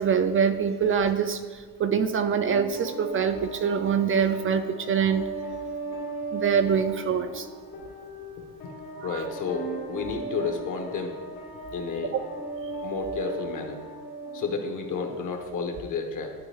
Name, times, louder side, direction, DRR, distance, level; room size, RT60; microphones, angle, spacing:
voice 1, 0.0-5.3 6.3-7.5 9.0-9.3, right 7 dB, 35° right, 8 dB, 0.4 m, -25 dB
sound 1, 2.2-15.2, right 2 dB, 75° left, 1.8 m, -37 dB
voice 2, 9.0-11.1 11.7-12.1 12.8-13.8 14.3-16.3, left 5 dB, 60° left, 4 dB, 1.2 m, -31 dB
11.5 x 4.4 x 3.4 m, 1.5 s
cardioid pair, 125°, 35 cm